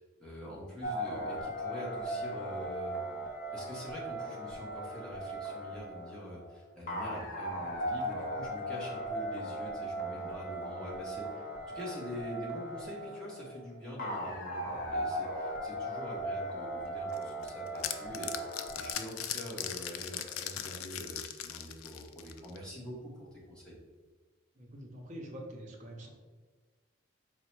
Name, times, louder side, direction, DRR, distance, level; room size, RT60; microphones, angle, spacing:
voice 1, 0.2-3.0 3.5-23.8, equal, 5° left, -5 dB, 0.9 m, -45 dB
sound 1, 0.8-18.9, right 1 dB, 40° left, 0.6 m, -38 dB
sound 2, 17.1-22.6, left 10 dB, 85° left, 0.3 m, -39 dB
voice 2, 24.6-26.1, right 1 dB, 35° right, 1 dB, 0.6 m, -45 dB
4.4 x 2.1 x 4.4 m, 1.4 s
head